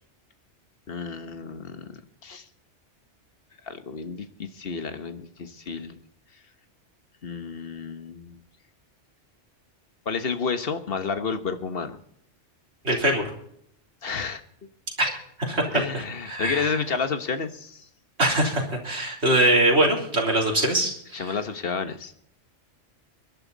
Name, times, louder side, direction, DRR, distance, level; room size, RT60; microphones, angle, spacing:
voice 1, 0.9-2.4 3.6-6.0 7.2-8.4 10.0-12.0 14.0-14.4 15.7-17.9 21.1-22.1, left 5 dB, 55° left, 9 dB, 1.5 m, -31 dB
voice 2, 12.8-13.2 15.0-16.7 18.2-21.2, right 1 dB, 65° right, -1 dB, 3.9 m, -23 dB
23.0 x 11.0 x 4.1 m, 0.69 s
omnidirectional pair, 1.2 m